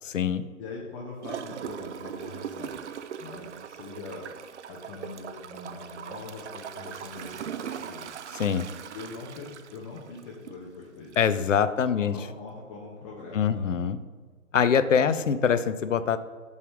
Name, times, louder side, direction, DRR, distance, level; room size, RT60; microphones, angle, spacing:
voice 1, 0.6-2.8 3.2-4.2 4.7-8.1 8.9-11.1 12.0-13.7, left 3 dB, 25° left, -3 dB, 0.9 m, -42 dB
Gurgling / Toilet flush, 1.2-10.6 11.1-11.2, right 8 dB, 60° right, 0.5 m, -40 dB
voice 2, 11.2-12.1 13.3-14.0 14.5-16.2, left 7 dB, 65° left, 12 dB, 0.7 m, -23 dB
5.4 x 4.9 x 6.2 m, 1.5 s
figure-of-eight pair, 130°, 40 cm